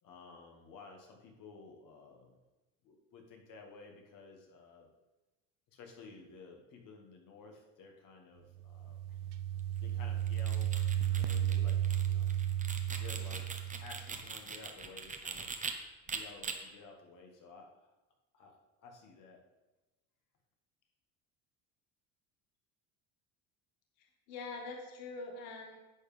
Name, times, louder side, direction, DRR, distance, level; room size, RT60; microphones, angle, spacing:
voice 1, 0.0-2.4 2.8-4.9 5.7-9.0 9.8-10.7 11.1-12.3 12.9-13.5 13.8-15.6 16.1-17.9 18.3-18.5 18.8-19.4, left 4 dB, 55° left, 1 dB, 2.1 m, -54 dB
sound 1, 8.6-14.2, right 11 dB, 80° right, 0.7 m, -34 dB
sound 2, 10.2-15.7 16.1-16.5, right 5 dB, 20° right, 1.0 m, -42 dB
voice 2, 24.0-25.8, left 3 dB, 85° left, 1 dB, 1.7 m, -44 dB
10.5 x 7.6 x 3.5 m, 1.1 s
cardioid pair, 110°, 38 cm